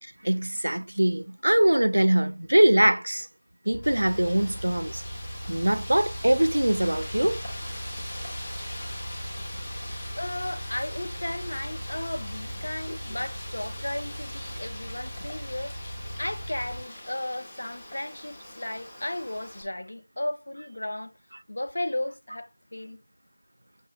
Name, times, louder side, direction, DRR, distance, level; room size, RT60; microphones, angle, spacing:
voice 1, 0.0-3.3 3.7-5.0 5.5-7.4 12.9-13.0, right 1 dB, 75° right, 0.5 m, -23 dB
sound 1, 3.7-16.8, equal, 25° left, 1.6 m, -39 dB
Wind, 3.8-19.6, left 1 dB, 10° left, 0.8 m, -42 dB
voice 2, 10.2-15.8 16.2-21.1 21.5-23.0, left 1 dB, 45° left, 1.0 m, -34 dB
6.8 x 2.8 x 5.2 m
figure-of-eight pair, 180°, 0 cm